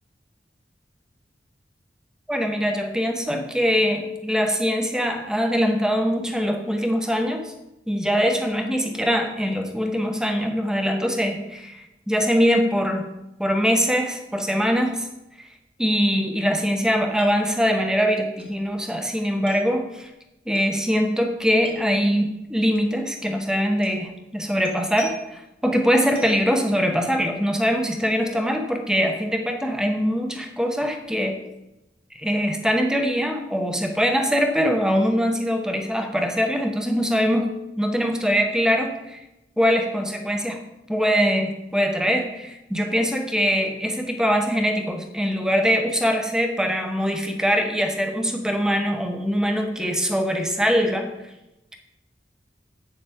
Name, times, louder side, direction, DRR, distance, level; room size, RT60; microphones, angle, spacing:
voice 1, 2.3-7.5 7.9-13.0 13.4-15.1 15.8-20.1 20.5-31.4 32.1-39.2 39.6-40.6 40.9-51.1, equal, 5° right, 4 dB, 0.9 m, -23 dB
sound 1, 17.2-17.3 17.6-17.7 18.4-18.5 19.5-19.7 20.5-20.7 21.6-21.8 22.7-22.8 23.8-24.0 24.6-25.4 26.1-26.5, right 2 dB, 35° right, 1.4 m, -41 dB
8.3 x 6.9 x 3.6 m, 0.93 s
head